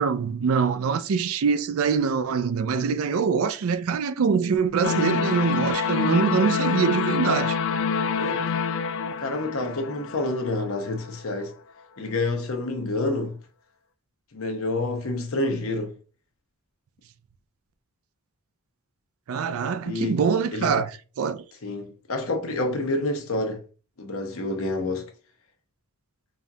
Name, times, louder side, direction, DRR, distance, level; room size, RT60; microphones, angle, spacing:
voice 1, 0.0-7.6 19.3-20.9 21.2-21.4, right 6 dB, 80° right, 0.4 m, -24 dB
sound 1, 4.8-10.9, left 5 dB, 60° left, 0.3 m, -26 dB
voice 2, 9.2-11.5 12.0-13.4 14.3-16.0 19.8-20.2 20.5-20.7 21.6-23.6 24.0-25.1, left 2 dB, 75° left, 0.8 m, -28 dB
5.2 x 2.3 x 2.7 m
head